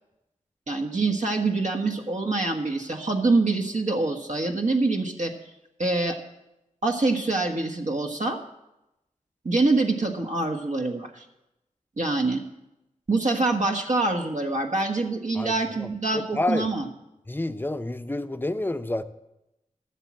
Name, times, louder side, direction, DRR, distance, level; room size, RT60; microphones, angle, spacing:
voice 1, 0.7-5.3 5.8-6.2 6.8-8.4 9.4-11.2 12.0-12.4 13.1-16.9, right 3 dB, 65° right, 1.5 m, -25 dB
voice 2, 16.3-16.7 17.3-19.0, left 2 dB, 15° left, 0.6 m, -28 dB
13.5 x 7.2 x 7.4 m
wide cardioid pair, 75°, 14 cm